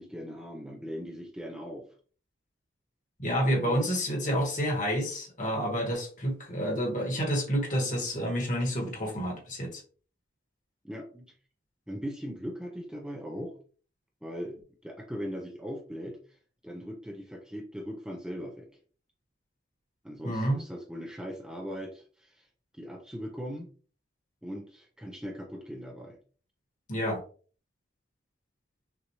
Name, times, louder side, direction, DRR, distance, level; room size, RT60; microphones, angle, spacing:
voice 1, 0.0-1.9 3.6-3.8 10.8-11.3 11.9-13.6 14.2-14.6 14.8-16.4 16.6-18.7 20.0-22.5 22.7-23.7 24.4-26.2, equal, 5° right, 0 dB, 0.6 m, -39 dB
voice 2, 3.2-9.8 20.2-20.6 26.9-27.2, equal, 45° left, 0 dB, 1.5 m, -29 dB
6.0 x 2.5 x 3.0 m, 0.40 s
head